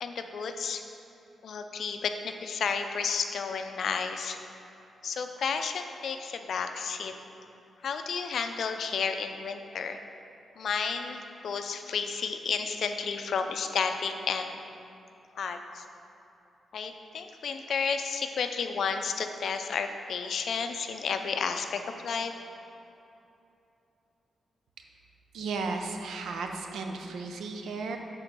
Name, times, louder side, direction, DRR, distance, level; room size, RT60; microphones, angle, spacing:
voice 1, 0.0-0.8 1.4-4.4 5.0-7.1 7.8-10.0 10.6-14.6 15.4-15.8 16.7-22.3, left 5 dB, 65° left, 7 dB, 0.5 m, -32 dB
voice 2, 25.3-28.0, right 4 dB, 90° right, 4 dB, 0.6 m, -34 dB
7.8 x 3.8 x 6.0 m, 2.8 s
cardioid pair, 110°, 0 cm